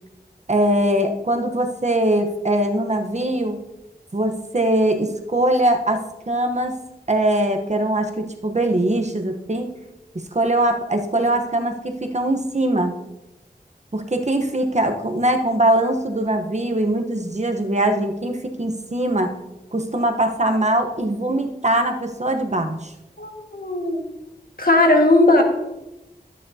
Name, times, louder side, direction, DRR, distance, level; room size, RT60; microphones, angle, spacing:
voice 1, 0.5-3.6 4.1-6.7 7.1-9.7 10.1-13.0 13.9-19.4 19.7-22.9, right 1 dB, 45° right, 5 dB, 1.0 m, -21 dB
voice 2, 23.2-24.0 24.6-25.4, left 2 dB, 60° left, 2 dB, 1.7 m, -17 dB
12.5 x 9.5 x 2.8 m, 0.95 s
wide cardioid pair, 60°, 17 cm